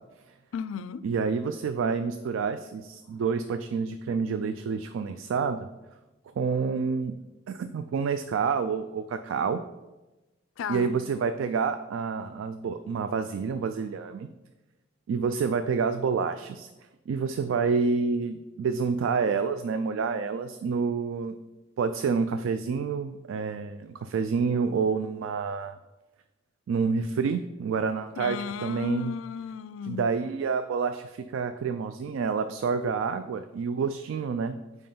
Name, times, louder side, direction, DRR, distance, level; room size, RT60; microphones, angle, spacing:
voice 1, 0.5-1.0 10.6-10.9 28.2-30.1, left 6 dB, 80° left, 15 dB, 0.3 m, -34 dB
voice 2, 1.0-5.7 6.4-7.1 7.5-9.6 10.7-14.3 15.1-16.7 17.1-21.4 21.8-25.8 26.7-29.1 29.8-34.6, right 5 dB, 75° right, 10 dB, 0.3 m, -28 dB
5.4 x 4.7 x 5.4 m, 1.1 s
head